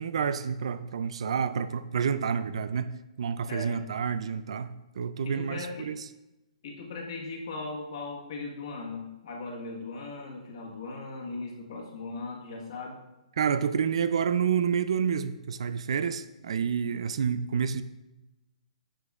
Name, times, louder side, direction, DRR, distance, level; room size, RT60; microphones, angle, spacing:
voice 1, 0.0-5.9 13.4-17.8, right 7 dB, 50° right, 13 dB, 0.3 m, -29 dB
voice 2, 3.5-3.8 5.3-5.9 6.6-13.0, left 3 dB, 45° left, 0 dB, 1.4 m, -38 dB
10.0 x 5.1 x 2.4 m, 0.98 s
hypercardioid pair, 175°, 4 cm